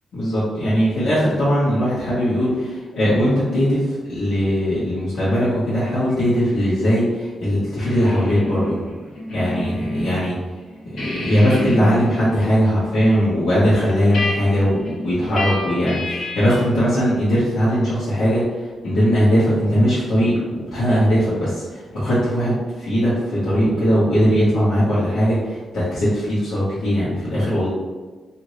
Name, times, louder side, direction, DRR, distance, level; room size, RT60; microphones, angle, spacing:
voice 1, 0.1-8.8 9.3-10.3 11.0-27.7, equal, 85° left, -12 dB, 1.2 m, -19 dB
sound 1, 7.8-10.3 10.6-16.7, left 1 dB, 60° left, 0.8 m, -30 dB
3.1 x 2.8 x 2.8 m, 1.3 s
wide cardioid pair, 165°, 0 cm